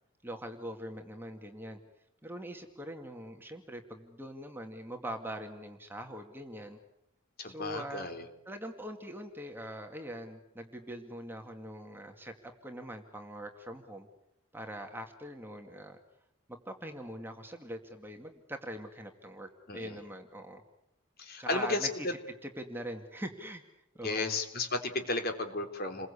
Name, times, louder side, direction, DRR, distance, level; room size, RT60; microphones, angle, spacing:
voice 1, 0.2-1.8 2.2-6.8 7.4-8.1 8.5-14.1 14.5-16.0 16.5-20.6 21.4-22.1 22.4-23.6 23.9-24.4, equal, 10° right, 4 dB, 2.2 m, -43 dB
voice 2, 7.4-8.3 19.7-20.0 21.2-22.1 24.0-26.1, left 2 dB, 45° left, 6 dB, 3.5 m, -33 dB
29.5 x 22.0 x 8.5 m, 0.83 s
head